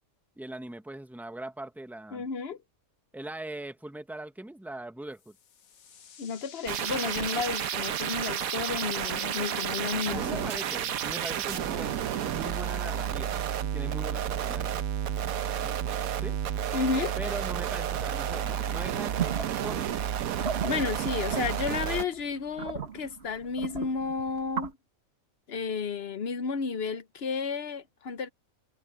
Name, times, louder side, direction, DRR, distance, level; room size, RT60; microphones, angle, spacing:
voice 1, 0.4-2.3 3.1-5.3 10.0-13.3 13.7-14.7 15.6-15.7 16.2-16.4 17.2-20.0, right 1 dB, ahead, 0.8 m, -40 dB
voice 2, 2.1-2.6 6.2-10.5 16.7-17.1 20.6-24.7 25.5-28.3, left 5 dB, 50° left, 0.9 m, -32 dB
sound 1, 5.2-12.4, left 7 dB, 75° left, 1.6 m, -48 dB
sound 2, 6.7-22.0, right 9 dB, 80° right, 1.2 m, -31 dB
sound 3, 19.2-24.7, right 7 dB, 50° right, 1.5 m, -36 dB
omnidirectional pair, 1.5 m